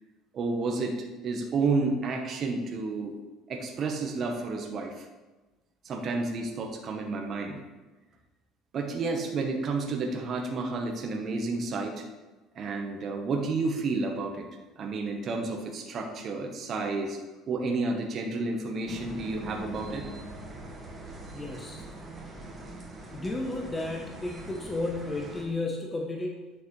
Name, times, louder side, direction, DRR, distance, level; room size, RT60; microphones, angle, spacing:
voice 1, 0.3-1.0 1.2-3.1 3.5-5.0 5.8-7.6 8.7-12.0 12.5-14.5 14.8-17.2 17.5-20.0, right 3 dB, 45° right, 2 dB, 1.2 m, -31 dB
sound 1, 18.9-25.4, right 1 dB, 25° right, 1.6 m, -43 dB
voice 2, 21.3-21.8 23.1-26.5, left 2 dB, 15° left, 0 dB, 1.0 m, -33 dB
9.7 x 6.8 x 3.3 m, 1.2 s
cardioid pair, 115°, 0 cm